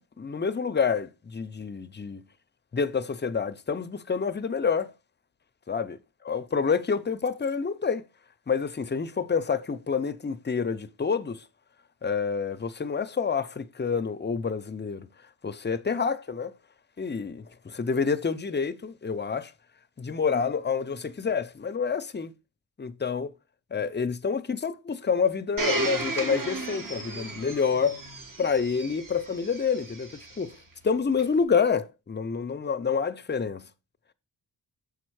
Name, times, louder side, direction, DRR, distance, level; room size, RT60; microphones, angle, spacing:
voice 1, 0.0-2.2 2.7-4.9 5.7-6.0 6.2-8.0 8.5-11.4 12.0-15.1 15.4-16.5 17.0-19.5 20.0-22.3 22.8-23.3 23.7-28.0 28.4-30.6 30.8-33.7, left 5 dB, 25° left, 0.4 m, -28 dB
Domestic sounds home sounds, 25.6-30.4 31.2-31.3, right 2 dB, 50° right, 1.6 m, -34 dB
6.9 x 4.3 x 4.6 m
wide cardioid pair, 120°, 43 cm